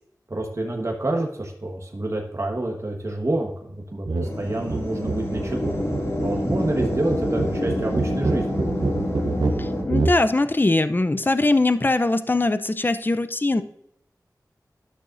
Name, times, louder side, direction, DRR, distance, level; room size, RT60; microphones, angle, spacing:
voice 1, 0.3-3.5 3.9-5.8 6.2-8.6, right 1 dB, 45° right, 0 dB, 1.2 m, -27 dB
sound 1, 4.1-4.3 4.6-10.2, right 3 dB, 80° right, 0.7 m, -27 dB
sound 2, 4.2-9.8, left 1 dB, 45° left, 2.4 m, -28 dB
voice 2, 9.6-13.6, left 2 dB, 30° left, 11 dB, 0.5 m, -21 dB
11.5 x 6.4 x 2.6 m, 0.74 s
wide cardioid pair, 65°, 7 cm